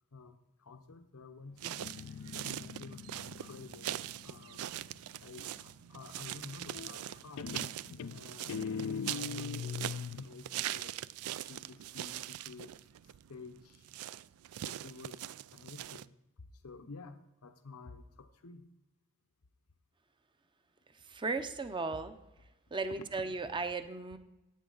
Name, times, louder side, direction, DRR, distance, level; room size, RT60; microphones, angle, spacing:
voice 1, 0.1-1.8 2.4-4.7 5.2-7.6 8.1-11.0 11.4-13.9 14.6-18.7 21.0-21.2, left 4 dB, 80° left, 7 dB, 0.9 m, -52 dB
Guitar, 1.6-5.2 6.7-7.1 7.4-10.3, left 6 dB, 65° left, 0.4 m, -41 dB
sound 1, 1.6-16.0, right 12 dB, 75° right, 0.3 m, -42 dB
voice 2, 20.9-22.1 22.7-24.2, right 3 dB, 20° right, 9 dB, 0.6 m, -36 dB
15.5 x 9.3 x 3.9 m, 0.99 s
head